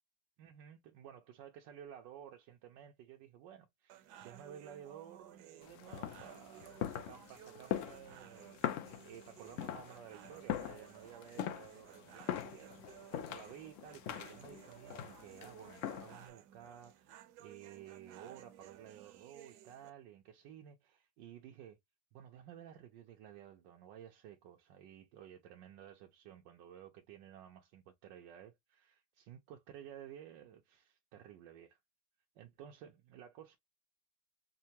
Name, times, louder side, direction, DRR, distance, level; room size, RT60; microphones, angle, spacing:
voice 1, 0.4-12.8 13.1-21.8 22.1-31.8 32.4-33.6, right 10 dB, 85° right, 1.3 m, -54 dB
sound 1, 3.9-19.9, right 11 dB, 70° right, 1.1 m, -57 dB
sound 2, 5.6-16.3, left 11 dB, 85° left, 0.7 m, -42 dB
5.4 x 2.1 x 2.8 m
omnidirectional pair, 1.9 m